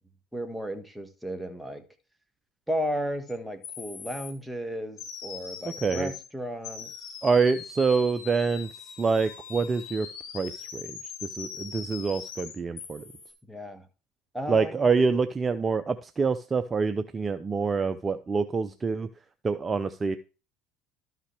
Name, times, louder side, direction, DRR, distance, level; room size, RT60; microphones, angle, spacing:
voice 1, 0.3-1.8 2.7-6.9 13.5-13.9 14.3-14.9, equal, ahead, 1.5 m, -34 dB
sound 1, 3.3-3.4 3.6-4.3 5.0-6.3 6.6-13.3, left 7 dB, 65° left, 2.4 m, -41 dB
voice 2, 7.2-8.7 9.0-10.1 10.3-13.0 14.5-19.1 19.4-20.2, right 4 dB, 25° right, 0.6 m, -26 dB
12.5 x 5.7 x 3.4 m
supercardioid pair, 95°, 0 cm